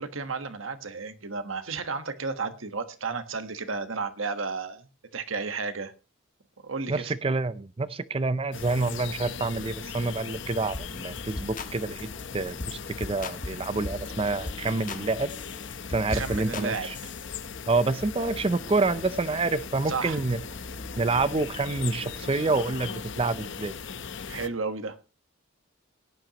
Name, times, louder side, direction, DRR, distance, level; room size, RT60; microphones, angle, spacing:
voice 1, 0.0-4.9 5.1-5.9 6.6-7.1 16.1-17.1 19.9-20.2 24.3-25.0, right 4 dB, 85° right, 10 dB, 1.4 m, -33 dB
voice 2, 6.9-12.1 12.3-15.3 15.9-17.0 17.7-20.4 21.0-23.7, right 3 dB, 30° right, 15 dB, 0.5 m, -27 dB
sound 1, 8.5-24.5, left 6 dB, 65° left, 0.8 m, -39 dB
sound 2, 10.7-10.9 11.2-11.7 12.0-12.2 12.6-12.8 13.0-14.1 14.5-15.0 15.3-17.3, left 2 dB, 40° left, 1.3 m, -37 dB
sound 3, 11.0-23.9, left 1 dB, 15° left, 2.4 m, -49 dB
17.5 x 10.5 x 2.9 m, 0.29 s
head